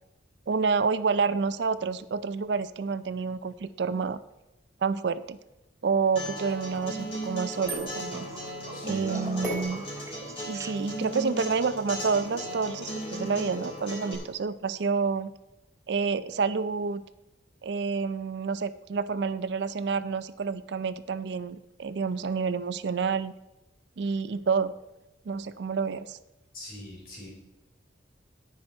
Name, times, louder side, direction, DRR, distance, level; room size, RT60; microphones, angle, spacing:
voice 1, 0.5-4.2 4.8-5.4 5.8-8.3 8.9-9.8 10.4-15.3 15.9-17.0 17.6-23.3 24.0-24.7 25.3-26.2, right 5 dB, 65° right, 14 dB, 0.4 m, -29 dB
Acoustic guitar, 6.2-14.1, right 1 dB, 30° left, 3.9 m, -37 dB
sound 1, 7.5-11.2 13.4-13.9 15.5-15.6, right 3 dB, 15° right, 0.6 m, -46 dB
sound 2, 7.6-13.4, right 1 dB, ahead, 3.3 m, -42 dB
voice 2, 8.7-9.2 26.5-27.3, left 1 dB, 50° left, -2 dB, 3.9 m, -42 dB
17.5 x 5.9 x 4.4 m, 0.98 s
head